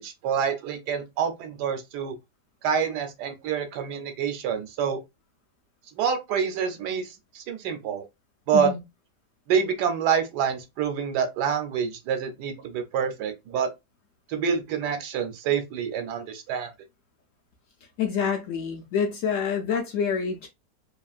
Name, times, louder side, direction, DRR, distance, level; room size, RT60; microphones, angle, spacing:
voice 1, 0.0-2.2 2.6-5.0 6.0-8.0 8.5-8.7 9.5-13.7 14.3-16.7, right 7 dB, 80° right, 1.2 m, -27 dB
voice 2, 18.0-20.5, left 6 dB, 70° left, 0.7 m, -27 dB
2.9 x 2.4 x 2.3 m
omnidirectional pair, 1.8 m